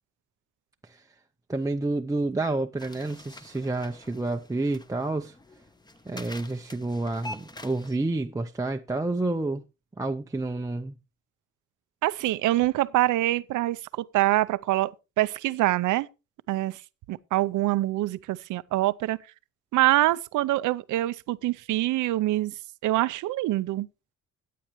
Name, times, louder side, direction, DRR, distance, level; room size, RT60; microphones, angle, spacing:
voice 1, 1.5-5.3 6.1-9.6 10.0-10.9, right 2 dB, 10° right, 0.6 m, -29 dB
sound 1, 2.8-8.0, left 2 dB, 15° left, 0.9 m, -45 dB
voice 2, 12.0-16.1 16.5-16.8 17.1-19.2 19.7-22.5 22.8-23.9, right 16 dB, 80° right, 0.6 m, -25 dB
14.5 x 8.6 x 3.0 m
cardioid pair, 90°, 30 cm